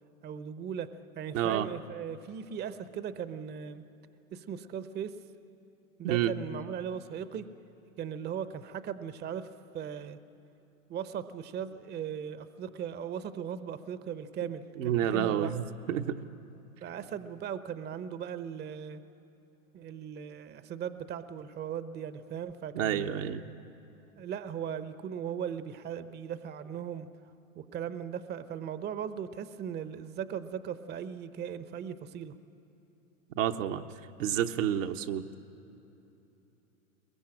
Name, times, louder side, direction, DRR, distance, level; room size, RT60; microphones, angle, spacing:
voice 1, 0.2-0.9 1.2-3.9 4.3-5.1 6.0-7.4 8.0-9.5 9.7-10.2 10.9-15.5 16.8-19.0 19.7-23.3 24.2-27.1 27.5-32.3, right 8 dB, 25° right, 12 dB, 0.8 m, -38 dB
voice 2, 1.3-1.7 6.0-6.3 14.8-16.2 22.7-23.5 33.4-33.8 34.2-35.3, right 10 dB, 65° right, 5 dB, 1.1 m, -29 dB
22.0 x 21.5 x 8.8 m, 3.0 s
hypercardioid pair, 105°, 41 cm